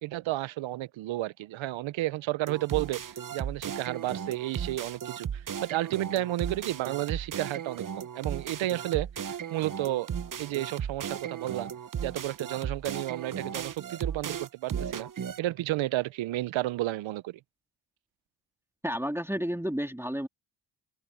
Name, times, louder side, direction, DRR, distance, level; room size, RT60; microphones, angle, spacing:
voice 1, 0.0-10.1 10.4-11.7 12.0-15.1 15.4-17.4, right 16 dB, 85° right, 0.7 m, -32 dB
sound 1, 2.5-15.4, right 8 dB, 45° right, 0.9 m, -36 dB
voice 2, 18.8-20.3, equal, 5° right, 3.0 m, -31 dB
supercardioid pair, 50°, 45 cm